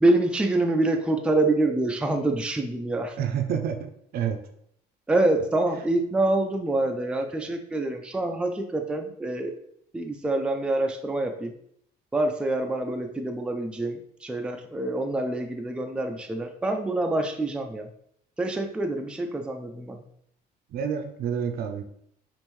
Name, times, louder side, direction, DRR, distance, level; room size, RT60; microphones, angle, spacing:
voice 1, 0.0-3.2 5.1-9.6 9.9-11.5 12.1-17.9 18.4-20.0, right 2 dB, 5° right, 4 dB, 0.4 m, -26 dB
voice 2, 3.2-4.4 20.7-21.8, right 8 dB, 65° right, 6 dB, 0.6 m, -28 dB
5.3 x 2.6 x 3.1 m, 0.70 s
cardioid pair, 110°, 17 cm